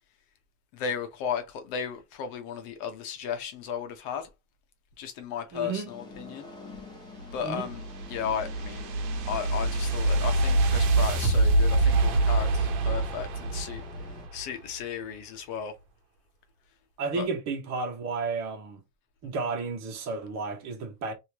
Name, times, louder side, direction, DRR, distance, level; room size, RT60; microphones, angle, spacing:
voice 1, 0.7-4.3 5.0-6.5 7.3-7.8 8.1-8.9 9.2-13.8 14.3-15.7 17.2-17.3, left 7 dB, 50° left, 1.0 m, -35 dB
voice 2, 5.5-5.9 7.4-7.7 17.0-18.8 19.2-21.1, right 4 dB, 35° right, 1.2 m, -32 dB
sound 1, 5.9-14.3, left 3 dB, 10° left, 0.6 m, -47 dB
sound 2, 7.2-14.5, right 2 dB, 75° right, 1.1 m, -25 dB
3.2 x 2.8 x 2.9 m
supercardioid pair, 155°, 45 cm